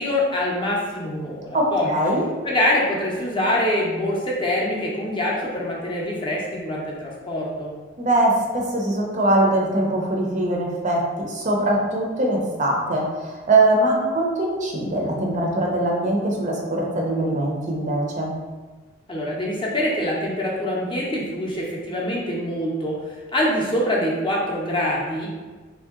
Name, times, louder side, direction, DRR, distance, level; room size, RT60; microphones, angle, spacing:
voice 1, 0.0-1.9 2.4-7.7 19.1-25.3, left 1 dB, 20° left, -4 dB, 0.6 m, -24 dB
voice 2, 1.5-2.2 8.0-18.3, right 1 dB, 35° right, -1 dB, 0.5 m, -22 dB
3.3 x 2.7 x 3.5 m, 1.3 s
head